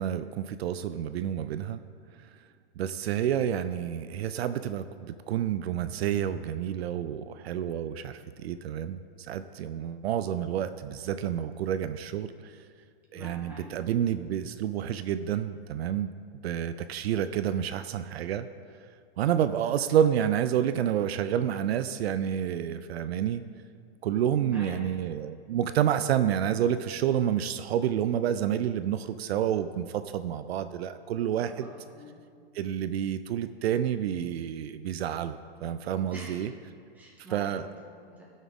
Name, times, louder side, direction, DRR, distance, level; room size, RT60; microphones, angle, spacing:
voice 1, 0.0-1.8 2.8-12.6 13.1-16.1 16.4-18.5 19.2-23.4 24.0-31.7 32.5-36.5 37.3-37.7, right 10 dB, 75° right, 11 dB, 0.5 m, -29 dB
voice 2, 13.1-13.7 24.4-24.7 31.4-32.1 36.1-36.4 36.9-37.5 38.0-38.3, equal, 5° right, -5 dB, 1.4 m, -46 dB
14.5 x 6.3 x 3.6 m, 2.2 s
hypercardioid pair, 165°, 32 cm